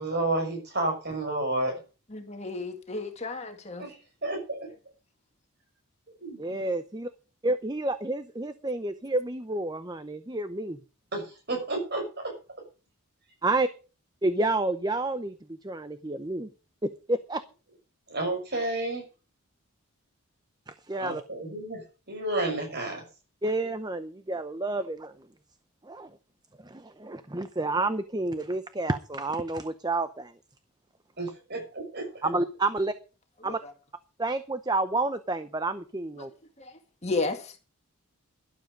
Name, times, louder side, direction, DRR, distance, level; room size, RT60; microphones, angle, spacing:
voice 1, 0.0-1.8 3.8-3.9 4.2-4.6 6.2-6.7 11.1-12.3 18.1-19.0 21.0-21.8 22.1-23.0 31.2-32.1, right 2 dB, 45° right, 6.0 m, -31 dB
voice 2, 2.1-3.9 33.5-33.7 36.2-36.3 36.6-36.7 37.0-37.6, left 3 dB, 30° left, 2.0 m, -33 dB
voice 3, 6.4-7.1 7.4-10.8 13.4-13.7 14.2-15.3 15.6-16.5 16.8-17.4 20.7-21.2 23.4-25.1 25.9-26.1 26.6-30.3 32.2-32.9 33.4-33.6 34.2-36.3, right 2 dB, 20° right, 0.7 m, -29 dB
12.5 x 12.0 x 5.1 m
head